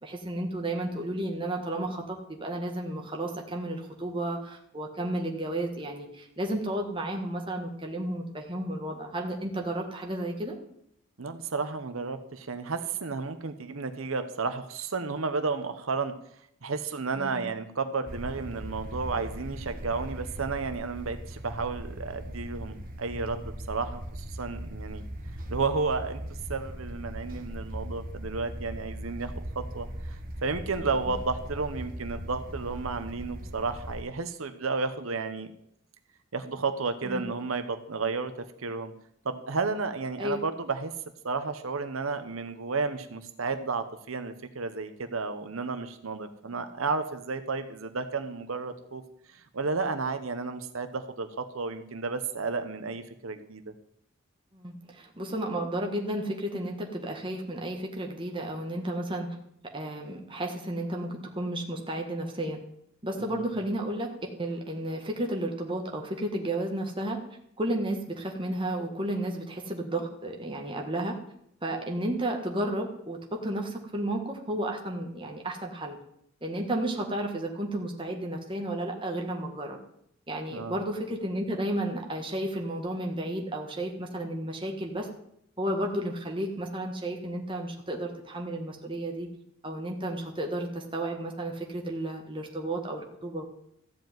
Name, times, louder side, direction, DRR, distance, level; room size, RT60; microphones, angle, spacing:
voice 1, 0.0-10.6 17.1-17.4 37.0-37.2 40.2-40.4 54.5-59.4 59.7-62.6 63.0-67.2 67.6-71.2 71.6-76.0 76.4-79.8 80.3-85.1 85.6-89.3 89.6-93.5, right 1 dB, 25° right, 1 dB, 1.5 m, -32 dB
voice 2, 11.2-16.1 16.6-25.0 25.5-26.2 26.5-35.5 36.3-38.3 38.6-38.9 39.2-40.9 41.2-49.0 49.3-53.7 63.2-63.5 80.5-80.8, right 4 dB, 80° right, 9 dB, 0.9 m, -32 dB
sound 1, 18.1-34.0, equal, 40° right, 1.3 m, -39 dB
14.0 x 5.2 x 9.2 m, 0.73 s
head